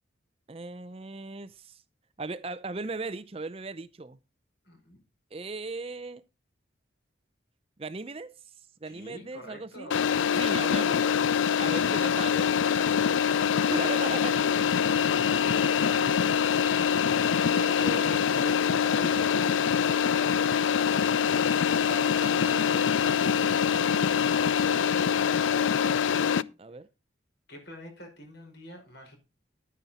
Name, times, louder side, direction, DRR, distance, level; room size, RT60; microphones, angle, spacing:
voice 1, 0.5-1.8 2.2-4.2 5.3-6.2 7.8-8.3 8.8-9.9 10.4-11.0 11.6-12.5 13.7-14.3 17.5-19.7 21.8-23.1 26.6-26.9, right 3 dB, 30° right, 0.5 m, -38 dB
voice 2, 4.6-5.0 8.8-10.0 13.0-17.7 20.2-20.8 27.5-29.2, equal, 60° left, 5.4 m, -47 dB
sound 1, 9.9-26.4, left 7 dB, 80° left, 0.4 m, -24 dB
10.5 x 9.6 x 4.2 m
head